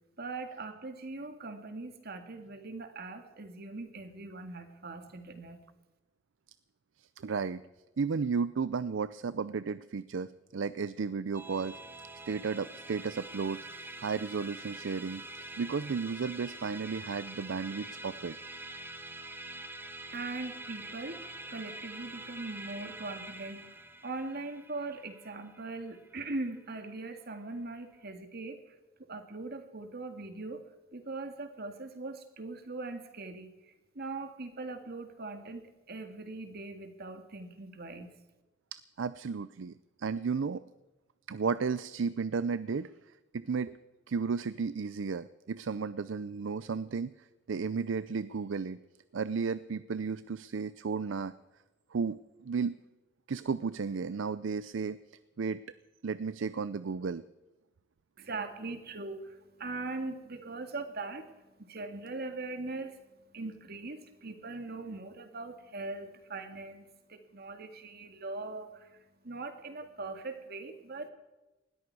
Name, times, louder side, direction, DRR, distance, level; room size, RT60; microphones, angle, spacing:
voice 1, 0.2-5.6 20.1-30.6 30.9-38.1 58.2-71.1, right 3 dB, 55° right, 7 dB, 2.0 m, -41 dB
voice 2, 7.0-7.6 8.0-11.8 12.3-13.7 14.0-15.2 15.6-18.4 38.7-40.6 41.3-42.9 43.3-43.8 44.1-48.8 49.1-51.3 51.9-52.8 53.3-55.0 55.4-55.6 56.0-57.2, right 5 dB, 70° right, 15 dB, 0.5 m, -33 dB
Musical instrument, 11.3-26.9, right 2 dB, 10° right, 1.1 m, -45 dB
19.5 x 13.5 x 4.7 m, 1.1 s
head